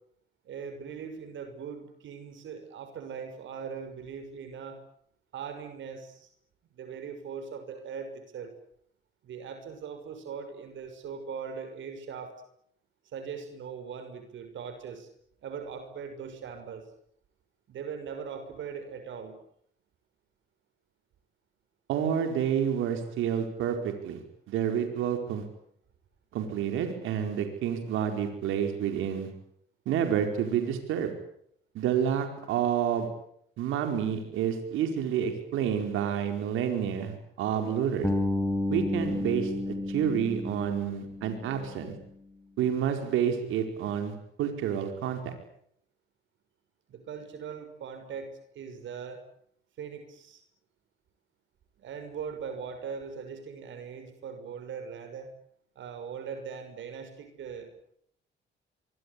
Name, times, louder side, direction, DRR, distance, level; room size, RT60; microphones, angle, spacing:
voice 1, 0.4-4.8 5.3-6.3 6.7-8.5 9.2-12.3 13.1-15.1 15.4-16.8 17.7-19.3 46.9-49.2 49.8-50.4 51.8-55.3 55.7-57.7, right 6 dB, 70° right, 7 dB, 6.2 m, -40 dB
voice 2, 21.9-24.2 24.5-25.4 26.3-29.3 29.8-31.1 31.7-33.1 33.6-38.1 38.7-41.9 42.6-45.3, right 8 dB, 90° right, 5 dB, 4.8 m, -29 dB
Bass guitar, 38.0-42.0, left 2 dB, 10° left, 5.5 m, -31 dB
25.0 x 24.0 x 8.5 m, 0.69 s
cardioid pair, 90°, 20 cm